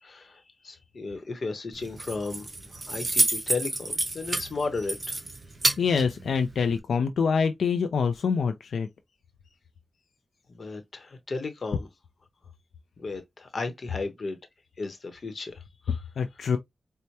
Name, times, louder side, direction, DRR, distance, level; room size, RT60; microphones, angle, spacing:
voice 1, 0.0-5.2 10.5-11.9 13.0-14.4 14.8-16.0, left 3 dB, 50° left, 0.9 m, -35 dB
Keys jangling, 1.7-6.8, right 2 dB, 35° right, 1.0 m, -30 dB
voice 2, 5.8-8.9 16.2-16.6, left 6 dB, 90° left, 0.4 m, -25 dB
4.5 x 2.1 x 2.7 m
wide cardioid pair, 95°, 0 cm